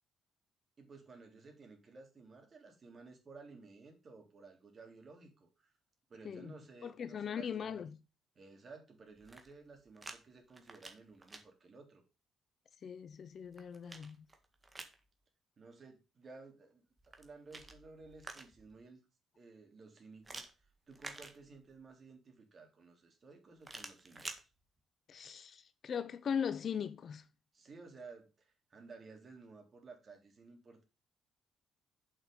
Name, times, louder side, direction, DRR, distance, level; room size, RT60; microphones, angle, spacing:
voice 1, 0.8-5.7 6.1-7.8 8.4-12.0 15.6-19.0 19.4-24.2 27.5-30.8, right 4 dB, 40° right, 3.5 m, -55 dB
voice 2, 6.2-8.0 12.8-14.2 25.1-27.3, left 7 dB, 55° left, 0.8 m, -40 dB
sound 1, 9.1-10.2 10.5-11.4 13.1-15.0 17.0-18.7 20.2-21.8 23.6-24.4, right 2 dB, 20° right, 1.8 m, -50 dB
7.5 x 6.0 x 5.3 m
cardioid pair, 90°, 0 cm